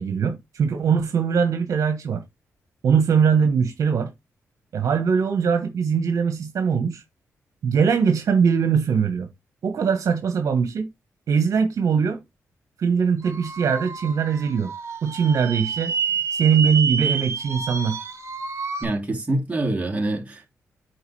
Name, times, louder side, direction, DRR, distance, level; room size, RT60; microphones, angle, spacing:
voice 1, 0.0-2.2 2.8-4.1 4.7-7.0 7.6-9.3 9.6-10.9 11.3-12.2 12.8-14.7 15.0-15.9 16.3-18.0, right 6 dB, 75° right, 1.3 m, -21 dB
sound 1, 13.2-18.8, right 6 dB, 55° right, 1.9 m, -29 dB
voice 2, 18.8-20.6, right 2 dB, 25° right, 2.4 m, -26 dB
8.1 x 4.7 x 3.3 m
cardioid pair, 95°, 6 cm